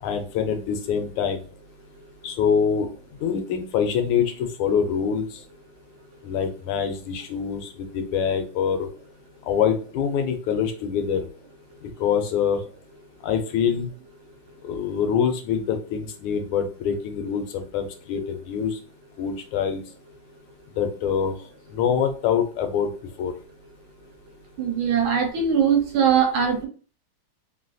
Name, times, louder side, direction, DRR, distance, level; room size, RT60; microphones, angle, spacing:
voice 1, 0.0-1.4 2.2-2.9 3.2-5.2 6.2-8.9 9.5-11.3 12.0-12.6 13.2-13.9 14.6-18.8 19.2-19.8 20.8-21.3 21.7-22.9 23.2-23.3, left 7 dB, 90° left, 5 dB, 1.6 m, -25 dB
voice 2, 24.6-26.7, right 7 dB, 75° right, 3 dB, 1.4 m, -21 dB
3.6 x 2.5 x 2.3 m, 0.37 s
omnidirectional pair, 2.3 m